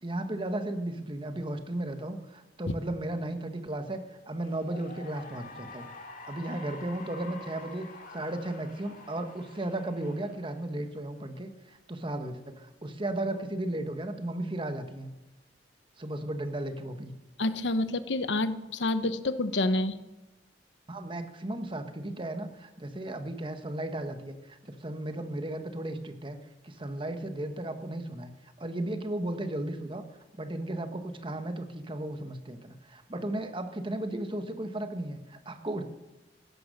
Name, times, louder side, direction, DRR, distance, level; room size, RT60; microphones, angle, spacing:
voice 1, 0.0-5.9 6.3-7.9 8.1-15.1 16.0-17.1 20.9-26.4 26.6-28.3 28.6-30.0 30.4-35.8, right 1 dB, 30° right, 8 dB, 1.3 m, -35 dB
Cheering / Applause, 4.3-11.0, left 3 dB, 50° left, 2.2 m, -47 dB
voice 2, 17.4-20.0, left 2 dB, 85° left, 13 dB, 0.9 m, -28 dB
16.5 x 12.0 x 6.5 m, 1.0 s
head